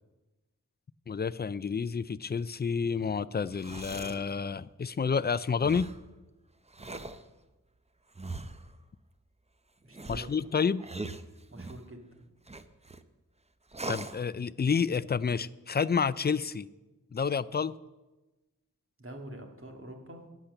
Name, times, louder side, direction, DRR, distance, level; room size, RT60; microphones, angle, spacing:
voice 1, 1.1-5.9 10.1-10.8 13.9-16.7 17.1-17.7, left 6 dB, 30° left, 18 dB, 0.4 m, -29 dB
sound 1, 3.4-4.3 5.6-6.0 6.7-7.2 8.2-8.7 9.9-11.9 12.5-13.0 13.7-14.2, right 2 dB, 20° right, 0.6 m, -41 dB
voice 2, 9.8-10.5 11.5-12.3 19.0-20.3, right 1 dB, 40° right, 3 dB, 1.9 m, -46 dB
11.5 x 8.4 x 6.6 m, 1.1 s
wide cardioid pair, 60°, 34 cm